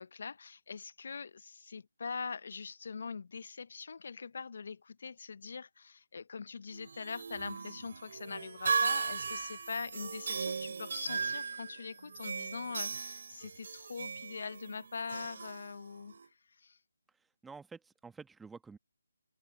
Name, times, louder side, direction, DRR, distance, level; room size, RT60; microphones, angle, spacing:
voice 1, 0.0-16.1 16.6-16.8, left 5 dB, 55° left, 0.7 m, -43 dB
sound 1, 6.7-16.3, right 5 dB, 55° right, 2.7 m, -37 dB
voice 2, 17.4-18.8, right 4 dB, 5° right, 1.5 m, -49 dB
open air
figure-of-eight pair, 150°, 0 cm